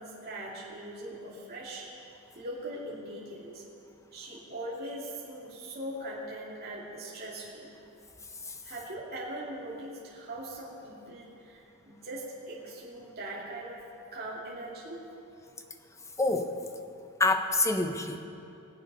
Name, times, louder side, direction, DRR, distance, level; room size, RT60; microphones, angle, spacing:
voice 1, 0.0-1.9 2.4-3.6 4.1-7.7 8.6-13.8 14.1-15.0, right 1 dB, 45° right, -8 dB, 2.6 m, -40 dB
voice 2, 16.2-16.5 17.2-18.3, left 2 dB, 15° left, 6 dB, 0.8 m, -26 dB
22.0 x 8.3 x 5.5 m, 2.7 s
head